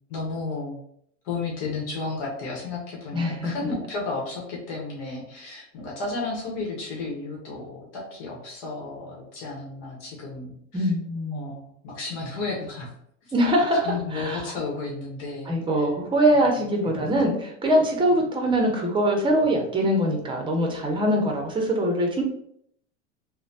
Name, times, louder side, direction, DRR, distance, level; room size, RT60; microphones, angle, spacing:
voice 1, 0.1-0.8 1.2-10.9 11.3-12.9 13.2-13.3 13.8-15.8 16.3-17.1 21.1-21.5, left 3 dB, 75° left, -3 dB, 1.0 m, -33 dB
voice 2, 3.1-3.5 10.7-11.5 13.3-13.9 14.1-14.4 15.5-22.2, equal, 15° right, 1 dB, 0.6 m, -23 dB
3.1 x 2.1 x 2.7 m, 0.70 s
supercardioid pair, 115°, 36 cm